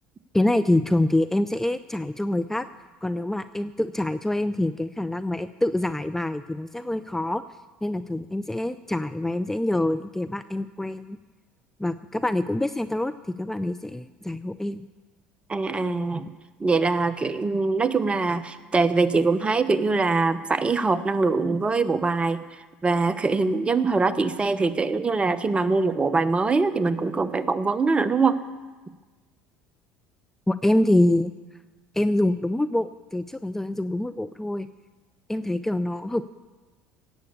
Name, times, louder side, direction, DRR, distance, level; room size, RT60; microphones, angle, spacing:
voice 1, 0.3-2.7 3.0-7.4 7.8-11.2 11.8-13.1 13.4-14.9 30.5-31.3 31.9-34.7 35.3-36.3, left 1 dB, 5° left, 12 dB, 0.5 m, -25 dB
voice 2, 15.5-16.3 16.6-22.4 22.8-28.4, right 3 dB, 20° right, 13 dB, 1.1 m, -23 dB
17.5 x 7.9 x 8.5 m, 1.3 s
hypercardioid pair, 75°, 5 cm